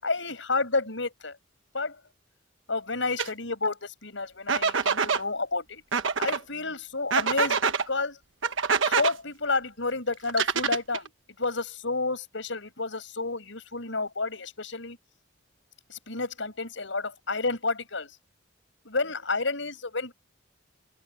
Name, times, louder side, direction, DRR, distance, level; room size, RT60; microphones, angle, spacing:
voice 1, 0.0-1.4 1.7-2.0 2.7-5.8 6.2-8.2 8.8-11.1 11.4-15.0 15.9-18.1 18.8-20.1, left 3 dB, 75° left, 7.1 m, -30 dB
sound 1, 3.2-3.3 4.5-5.2 5.9-6.4 7.1-7.8 8.4-9.1 10.3-11.1, right 5 dB, 80° right, 1.3 m, -25 dB
open air
head